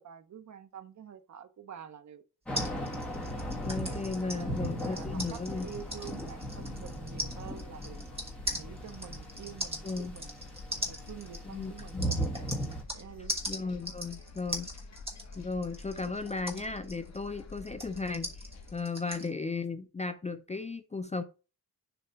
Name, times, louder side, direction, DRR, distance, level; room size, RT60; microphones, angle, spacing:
voice 1, 0.0-2.2 4.2-8.0 8.5-10.3 10.9-12.0 12.3-12.6 12.9-13.4, right 9 dB, 50° right, 0.7 m, -47 dB
Thunder / Rain, 2.5-12.8, right 1 dB, 5° left, 1.9 m, -38 dB
sound 1, 2.5-13.0 13.3-19.3, equal, 15° right, 1.3 m, -39 dB
sound 2, 3.0-18.8, left 3 dB, 45° left, 1.1 m, -48 dB
voice 2, 3.6-5.7 9.8-10.2 11.5-12.1 13.5-14.7 15.4-21.2, left 4 dB, 20° left, 0.4 m, -35 dB
6.9 x 3.2 x 5.6 m
wide cardioid pair, 170°, 38 cm